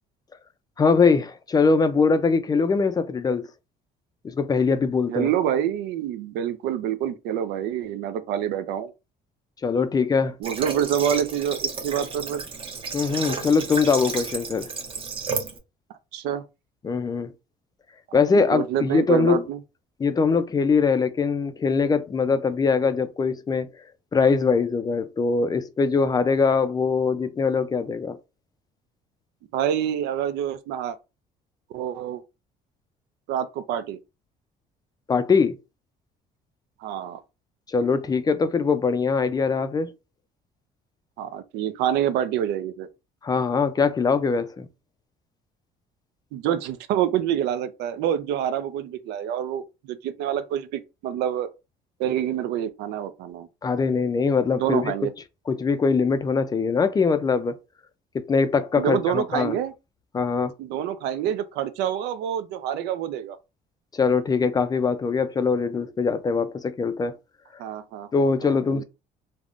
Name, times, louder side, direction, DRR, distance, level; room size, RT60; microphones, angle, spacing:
voice 1, 0.8-3.5 4.2-5.3 9.6-10.4 12.9-14.7 16.8-17.3 18.1-19.5 20.0-23.7 24.1-28.2 35.1-35.6 37.7-39.9 43.2-44.7 53.6-54.9 55.5-57.6 58.1-59.6 60.1-60.5 63.9-67.1 68.1-68.8, left 5 dB, 25° left, 0.3 m, -22 dB
voice 2, 5.1-8.9 10.4-12.4 16.1-16.4 18.3-19.6 29.5-31.0 31.7-32.2 33.3-34.0 36.8-37.2 41.2-42.9 46.3-51.5 52.0-53.5 54.6-55.1 58.8-59.7 60.6-63.4 67.6-68.1 68.4-68.8, right 10 dB, 85° right, 0.4 m, -27 dB
Water / Water tap faucet, 10.4-15.6, right 4 dB, 30° right, 0.7 m, -32 dB
3.5 x 2.1 x 2.4 m
cardioid pair, 110°, 17 cm